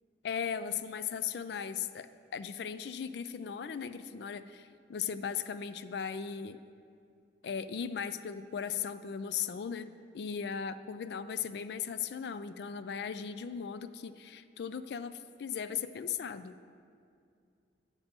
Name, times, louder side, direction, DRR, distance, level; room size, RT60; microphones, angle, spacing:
voice 1, 0.2-2.1 2.3-6.6 7.4-9.9 10.1-16.6, left 7 dB, 65° left, 12 dB, 0.3 m, -37 dB
7.3 x 5.1 x 7.3 m, 2.4 s
head